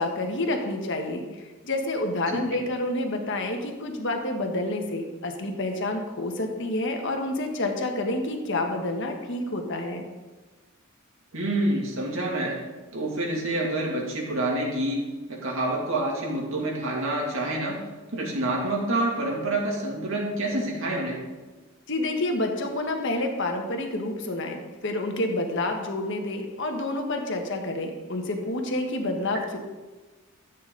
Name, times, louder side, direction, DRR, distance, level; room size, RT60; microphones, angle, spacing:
voice 1, 0.0-10.0 21.9-29.6, left 2 dB, 55° left, 3 dB, 1.4 m, -29 dB
voice 2, 11.3-12.6 12.9-17.8 18.1-21.2, right 1 dB, 60° right, -2 dB, 2.7 m, -27 dB
13.5 x 8.5 x 4.0 m, 1.2 s
head